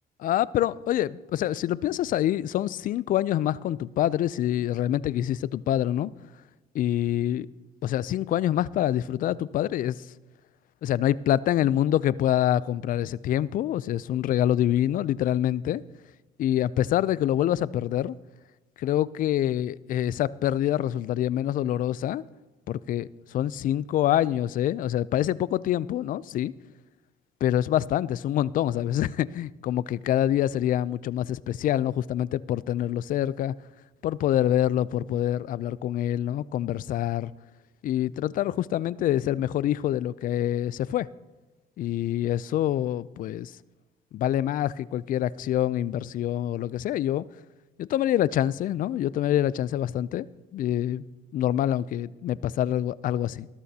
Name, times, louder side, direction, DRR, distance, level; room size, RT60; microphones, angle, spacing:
voice 1, 0.2-6.1 6.7-7.5 7.8-10.0 10.8-15.8 16.4-18.2 18.8-22.2 22.7-26.5 27.4-33.5 34.0-37.3 37.8-41.1 41.8-43.5 44.1-47.2 47.8-50.3 50.5-51.0 51.3-53.5, left 12 dB, 55° left, 0.4 m, -26 dB
19.0 x 12.5 x 2.8 m
cardioid pair, 110°, 17 cm